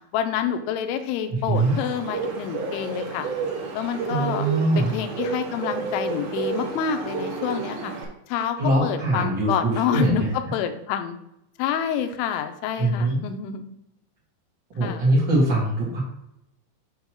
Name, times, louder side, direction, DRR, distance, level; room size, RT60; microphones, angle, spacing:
voice 1, 0.1-3.3 3.7-4.5 4.8-7.9 8.3-11.1 11.6-13.6 14.8-15.1, left 9 dB, 80° left, 7 dB, 3.1 m, -28 dB
voice 2, 1.3-1.7 4.1-4.9 8.6-10.3 12.8-13.2 14.7-16.0, right 2 dB, 80° right, -6 dB, 1.0 m, -22 dB
Bird, 1.5-8.0, right 4 dB, 65° right, 2.6 m, -31 dB
8.1 x 3.0 x 6.2 m, 0.79 s
omnidirectional pair, 5.5 m